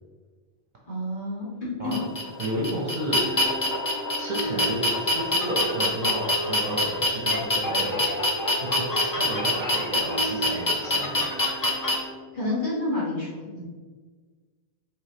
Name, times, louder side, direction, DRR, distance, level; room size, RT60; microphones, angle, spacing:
voice 1, 0.9-2.0 12.3-13.6, left 2 dB, 50° left, -8 dB, 1.8 m, -29 dB
sound 1, 1.9-11.9, left 1 dB, 30° left, 0.3 m, -25 dB
voice 2, 2.4-3.3 4.2-11.3 11.8-11.9, right 1 dB, 50° right, -3 dB, 0.8 m, -32 dB
sound 2, 3.1-12.2, right 1 dB, 80° left, 1.5 m, -38 dB
4.9 x 3.6 x 2.8 m, 1.4 s
omnidirectional pair, 1.1 m